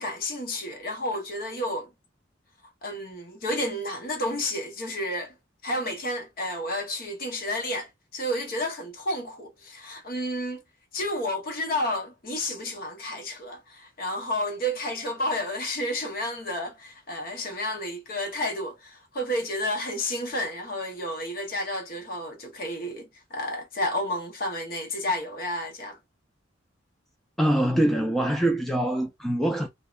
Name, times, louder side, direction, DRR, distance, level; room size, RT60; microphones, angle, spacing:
voice 1, 0.0-1.9 2.8-5.3 5.6-10.6 10.9-26.0, left 1 dB, 50° left, 0.8 m, -31 dB
voice 2, 27.4-29.7, right 1 dB, ahead, 0.3 m, -24 dB
2.7 x 2.0 x 2.3 m
head